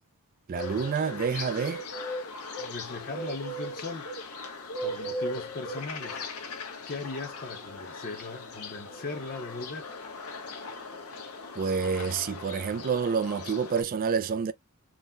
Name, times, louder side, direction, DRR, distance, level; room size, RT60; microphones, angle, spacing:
sound 1, 0.5-13.8, left 1 dB, 80° left, 0.9 m, -38 dB
voice 1, 0.5-1.8 11.6-14.5, right 6 dB, 40° right, 0.3 m, -28 dB
voice 2, 2.6-4.1 4.8-6.3 6.5-9.9, left 3 dB, 45° left, 0.6 m, -38 dB
3.8 x 2.1 x 2.4 m
head